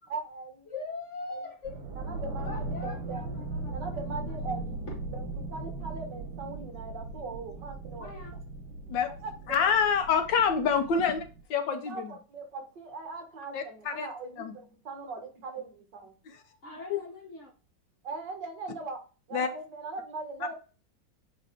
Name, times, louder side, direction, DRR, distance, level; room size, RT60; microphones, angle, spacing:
voice 1, 0.1-0.7 1.3-1.4 2.0-2.5 2.8-3.2 3.7-4.9 5.1-5.2 5.5-8.2 9.2-9.7 11.7-16.1 18.0-19.0 19.3-20.5, right 3 dB, 65° right, 3 dB, 2.0 m, -40 dB
voice 2, 0.7-1.8 2.4-3.9 4.9-5.0 8.0-8.3 16.3-17.5, left 3 dB, 45° left, 2 dB, 1.1 m, -42 dB
sound 1, 1.6-11.4, right 2 dB, 80° right, 1.9 m, -38 dB
voice 3, 9.5-11.2 11.5-12.1 13.5-14.1 14.4-14.6 16.9-17.0 19.3-19.5, left 6 dB, 70° left, 7 dB, 1.4 m, -26 dB
8.9 x 3.0 x 3.5 m, 0.34 s
omnidirectional pair, 2.1 m